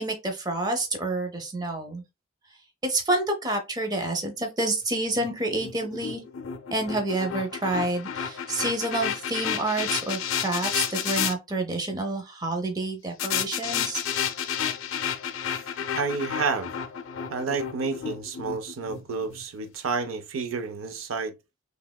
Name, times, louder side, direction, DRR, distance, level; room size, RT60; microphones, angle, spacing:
voice 1, 0.0-2.0 2.8-6.2 6.7-14.0, right 2 dB, 20° right, 0.6 m, -28 dB
sound 1, 5.1-11.3 13.2-19.4, left 8 dB, 85° left, 0.5 m, -31 dB
voice 2, 15.9-16.7 17.3-21.3, right 4 dB, 85° right, 0.5 m, -30 dB
3.2 x 2.9 x 2.2 m
head